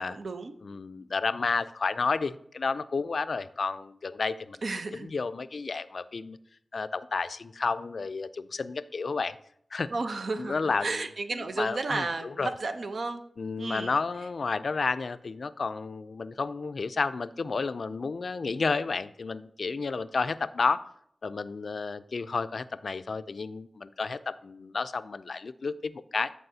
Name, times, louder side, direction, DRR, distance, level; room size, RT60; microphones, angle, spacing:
voice 1, 0.0-0.5 4.6-5.1 9.9-13.2 13.6-14.0, right 3 dB, 75° right, 7 dB, 0.7 m, -33 dB
voice 2, 0.6-4.6 5.0-6.4 6.7-9.4 9.7-9.9 10.4-11.0 11.3-12.5 13.4-20.9 21.2-26.3, left 4 dB, 70° left, 14 dB, 0.3 m, -31 dB
13.5 x 4.7 x 2.7 m, 0.69 s
cardioid pair, 45°, 0 cm